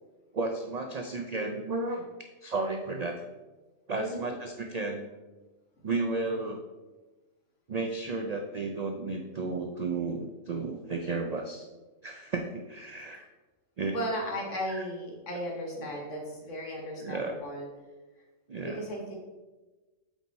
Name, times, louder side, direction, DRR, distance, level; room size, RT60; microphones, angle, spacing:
voice 1, 0.3-2.1 2.4-3.1 3.9-5.1 5.8-6.6 7.7-11.7 12.0-13.2 13.8-13.9 14.7-14.8 15.5-15.9 17.0-17.4 18.5-18.8, right 3 dB, 75° right, 4 dB, 0.3 m, -33 dB
voice 2, 13.8-17.7 18.6-19.2, equal, 60° left, -1 dB, 1.8 m, -36 dB
8.0 x 4.1 x 4.1 m, 1.2 s
omnidirectional pair, 1.4 m